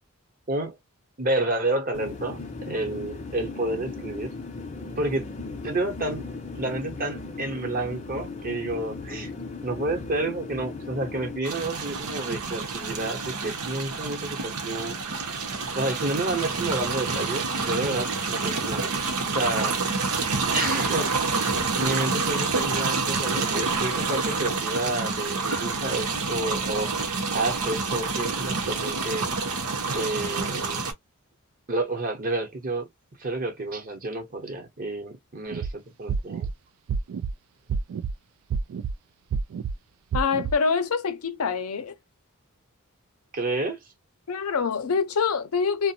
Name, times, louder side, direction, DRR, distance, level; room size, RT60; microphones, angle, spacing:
voice 1, 1.2-4.3 5.0-5.3 5.6-6.3 6.6-9.3 9.6-15.0 15.8-18.9 19.3-20.1 20.5-21.4 21.8-29.6 29.9-30.9 31.7-32.9 33.2-36.5 43.3-43.8, right 2 dB, 40° right, 0.9 m, -30 dB
sound 1, 1.9-11.4, left 3 dB, 35° left, 0.6 m, -37 dB
sound 2, 11.4-30.9, right 4 dB, 85° right, 0.8 m, -28 dB
sound 3, 35.5-35.7 36.1-36.5 36.9-37.3 37.7-38.1 38.5-38.9 39.3-39.7 40.1-40.5, right 5 dB, 65° right, 0.3 m, -28 dB
voice 2, 40.1-41.9 44.3-45.9, left 5 dB, 80° left, 0.6 m, -25 dB
2.5 x 2.1 x 2.7 m
head